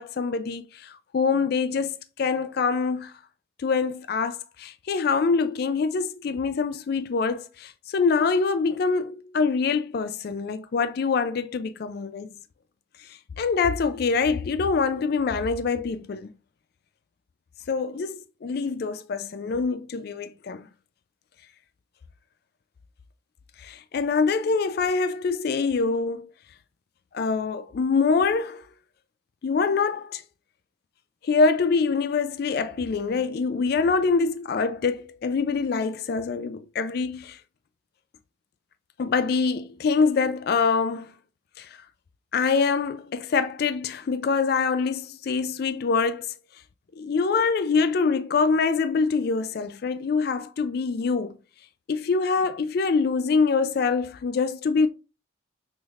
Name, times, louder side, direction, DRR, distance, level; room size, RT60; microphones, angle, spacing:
voice 1, 0.0-3.1 3.6-12.3 13.0-16.3 17.7-20.7 23.6-26.3 27.1-28.7 29.4-30.2 31.2-37.4 39.0-41.1 41.6-41.8 42.3-46.3 47.0-51.3 51.9-54.9, left 4 dB, 55° left, 0.4 m, -25 dB
6.1 x 3.5 x 2.4 m
head